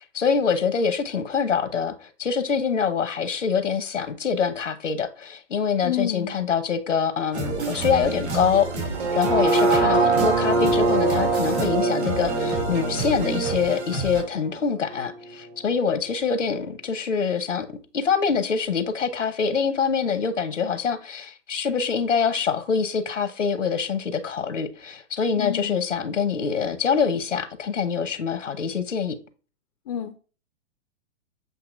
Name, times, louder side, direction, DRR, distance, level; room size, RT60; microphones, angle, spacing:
voice 1, 0.0-29.2, left 6 dB, 85° left, 0.9 m, -25 dB
voice 2, 5.8-6.3 25.4-25.8 29.9-30.1, left 9 dB, 35° left, 0.4 m, -29 dB
sound 1, 7.3-14.2, right 3 dB, 65° right, 2.0 m, -29 dB
sound 2, 8.9-15.1 15.5-15.6, right 3 dB, 40° right, 1.2 m, -24 dB
7.8 x 2.7 x 2.5 m
hypercardioid pair, 120°, 36 cm